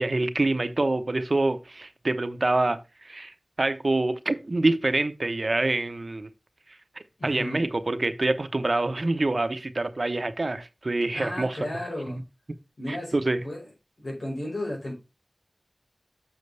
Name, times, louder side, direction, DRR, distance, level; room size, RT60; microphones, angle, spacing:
voice 1, 0.0-6.3 7.2-11.6 12.9-13.4, right 2 dB, 65° right, 0.8 m, -26 dB
voice 2, 7.2-7.6 11.1-12.2 12.8-13.2 13.4-13.7 14.0-14.9, left 1 dB, 80° left, 4.6 m, -33 dB
7.6 x 6.8 x 3.3 m
wide cardioid pair, 40°, 0 cm